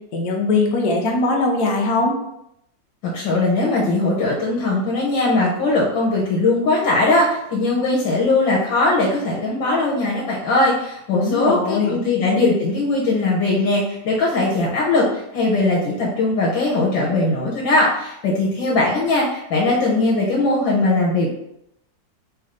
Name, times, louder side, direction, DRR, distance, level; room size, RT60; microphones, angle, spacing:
voice 1, 0.1-2.2 11.1-12.0, left 3 dB, 60° left, 0 dB, 1.3 m, -20 dB
voice 2, 3.0-15.1 15.3-21.3, left 2 dB, 85° left, -4 dB, 1.5 m, -19 dB
3.4 x 3.4 x 3.7 m, 0.78 s
omnidirectional pair, 2.0 m